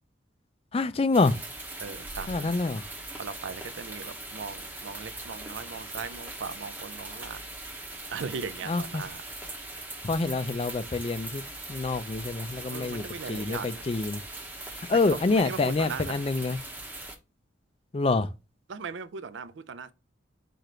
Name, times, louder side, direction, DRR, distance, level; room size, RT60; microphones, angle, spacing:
voice 1, 0.7-1.3 2.3-2.8 8.6-9.0 10.0-11.4 11.7-14.2 14.9-16.6 17.9-18.3, left 3 dB, 30° left, 0.4 m, -26 dB
sound 1, 1.1-17.2, right 2 dB, 10° right, 0.8 m, -41 dB
voice 2, 1.8-2.5 3.2-7.4 8.1-9.2 12.7-13.7 15.3-16.2 18.7-19.9, right 5 dB, 75° right, 0.4 m, -38 dB
4.9 x 2.5 x 4.3 m
head